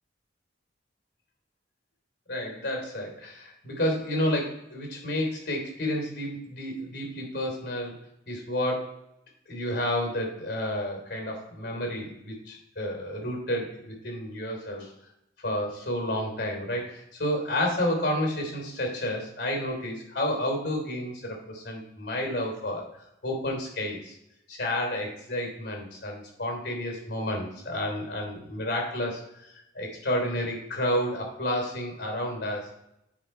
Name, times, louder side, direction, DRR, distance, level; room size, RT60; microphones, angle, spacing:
voice 1, 2.3-7.9 8.3-8.9 9.5-14.9 15.4-22.8 23.2-24.1 24.5-32.7, left 1 dB, 55° left, 1 dB, 3.4 m, -30 dB
8.8 x 5.8 x 4.5 m, 0.81 s
head